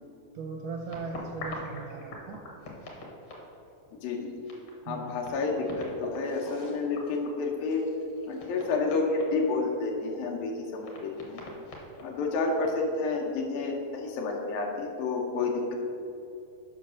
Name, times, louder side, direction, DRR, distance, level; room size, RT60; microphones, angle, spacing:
voice 1, 0.3-2.4 4.9-5.2, right 4 dB, 80° right, 1 dB, 1.8 m, -38 dB
sound 1, 0.9-3.9 4.2-4.3 4.4-9.6 10.2-10.3 10.8-13.1, left 2 dB, 55° left, 1.4 m, -44 dB
voice 2, 4.0-4.5 4.8-7.8 8.3-11.4 12.0-15.8, left 3 dB, 75° left, 1 dB, 2.6 m, -30 dB
7.7 x 5.9 x 6.4 m, 2.7 s
omnidirectional pair, 4.3 m